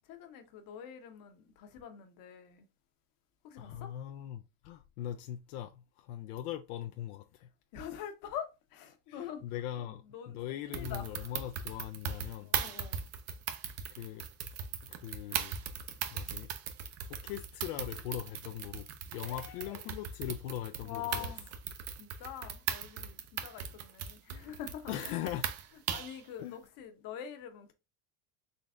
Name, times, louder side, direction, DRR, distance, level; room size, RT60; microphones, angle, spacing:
voice 1, 0.0-2.7 3.4-3.9 7.7-9.4 9.8-10.4 10.6-11.3 12.3-13.0 19.1-19.9 20.8-21.6 22.0-25.2 25.9-27.7, left 9 dB, 50° left, 0.9 m, -45 dB
voice 2, 3.6-7.5 9.1-12.5 13.9-14.3 14.8-15.6 16.1-16.5 17.1-18.9 19.1-21.3 24.9-25.5 26.4-26.6, left 12 dB, 80° left, 0.5 m, -40 dB
sound 1, 10.7-26.2, right 8 dB, 35° right, 0.5 m, -39 dB
3.9 x 3.3 x 2.4 m
supercardioid pair, 130°, 43 cm